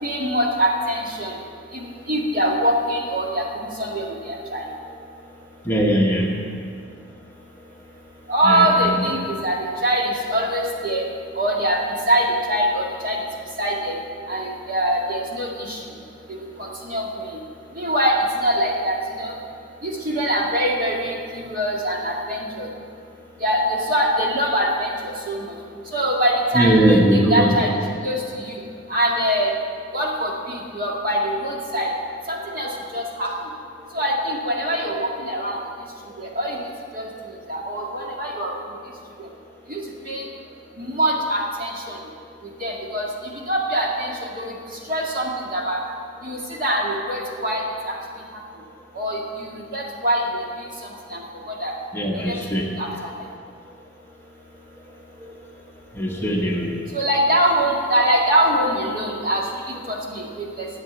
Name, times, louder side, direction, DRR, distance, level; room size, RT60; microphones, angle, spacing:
voice 1, 0.0-1.4 1.7-4.6 8.3-11.1 11.3-11.8 12.1-13.2 13.6-14.0 14.3-15.8 16.3-17.3 17.7-19.4 19.8-22.7 23.4-25.6 25.9-27.7 28.0-28.6 28.9-29.5 29.9-31.9 32.3-33.3 33.9-35.6 36.2-36.7 36.9-37.1 37.5-38.5 39.2-39.3 39.7-40.3 40.8-42.0 42.6-43.1 43.3-45.8 46.2-48.0 48.9-50.7 51.1-51.2 51.5-51.7 52.1-52.4 52.8-53.1 56.9-60.7, right 1 dB, 45° right, -2 dB, 2.0 m, -23 dB
voice 2, 5.6-6.6 8.4-9.1 26.5-27.6 51.9-52.6 55.9-56.7, right 1 dB, 10° left, -2 dB, 1.1 m, -20 dB
10.5 x 7.9 x 9.1 m, 2.3 s
head